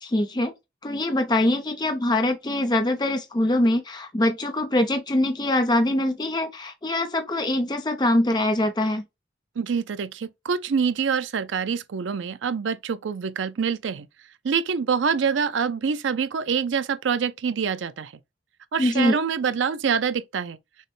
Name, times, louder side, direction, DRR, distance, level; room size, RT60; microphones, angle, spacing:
voice 1, 0.0-0.5 0.8-9.0 18.8-19.2, left 1 dB, 25° left, 0.6 m, -23 dB
voice 2, 9.6-14.1 14.4-18.1 18.7-20.6, right 6 dB, 80° right, 0.4 m, -25 dB
6.3 x 2.1 x 3.2 m
head